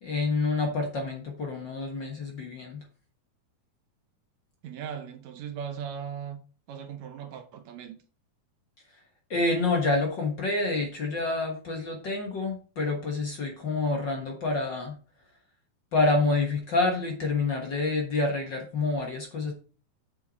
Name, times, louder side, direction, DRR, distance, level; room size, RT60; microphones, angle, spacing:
voice 1, 0.0-2.8 9.3-14.9 15.9-19.5, left 3 dB, 45° left, 1.6 m, -28 dB
voice 2, 4.6-6.4 6.7-8.0, right 8 dB, 70° right, 2.1 m, -38 dB
7.1 x 7.0 x 4.2 m
omnidirectional pair, 3.5 m